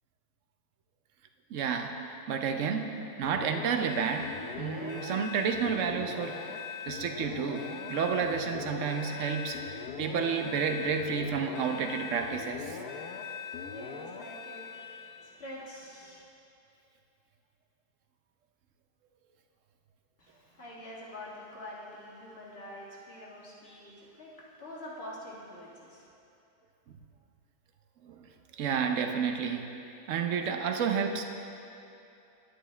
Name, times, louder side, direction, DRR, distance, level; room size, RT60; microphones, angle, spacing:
voice 1, 1.5-1.9 2.3-2.9 3.2-4.3 4.6-6.6 6.9-12.8 28.0-28.2 28.6-29.6 30.1-31.2, right 6 dB, 65° right, 5 dB, 0.9 m, -30 dB
sound 1, 3.2-15.3, left 5 dB, 80° left, 1.2 m, -41 dB
voice 2, 13.0-16.2 20.2-26.1, left 1 dB, 40° left, -5 dB, 1.8 m, -46 dB
10.5 x 10.0 x 3.3 m, 2.7 s
omnidirectional pair, 1.7 m